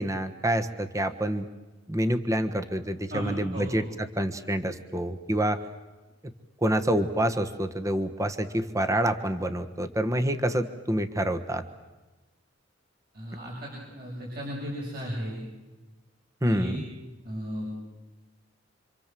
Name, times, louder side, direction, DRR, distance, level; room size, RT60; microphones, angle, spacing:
voice 1, 0.0-1.5 1.9-5.6 6.6-11.6 16.4-16.8, right 1 dB, 15° right, 8 dB, 1.3 m, -27 dB
voice 2, 3.1-3.7 13.1-15.4 16.4-16.8 17.2-17.7, equal, 55° right, -4 dB, 7.2 m, -35 dB
27.0 x 26.5 x 7.6 m, 1.1 s
head